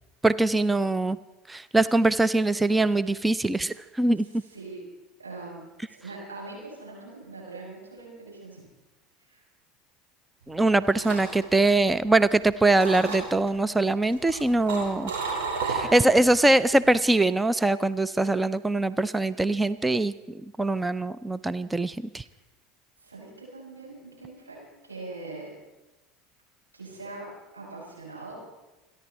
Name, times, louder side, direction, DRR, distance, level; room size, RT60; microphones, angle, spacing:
voice 1, 0.2-1.2 1.5-4.3 10.5-15.1 15.7-20.1 20.6-22.2, right 2 dB, 10° right, 15 dB, 0.5 m, -23 dB
voice 2, 4.5-4.8 5.2-5.6 5.9-8.6 9.3-9.4 18.1-18.3 23.0-25.5 26.7-27.3 27.5-28.4, right 3 dB, 90° right, -5 dB, 7.0 m, -42 dB
sound 1, 10.5-12.4 12.7-13.5 14.0-16.3 16.6-17.0, right 4 dB, 65° right, 4.7 m, -32 dB
28.0 x 11.0 x 4.3 m, 1.1 s
figure-of-eight pair, 75°, 0 cm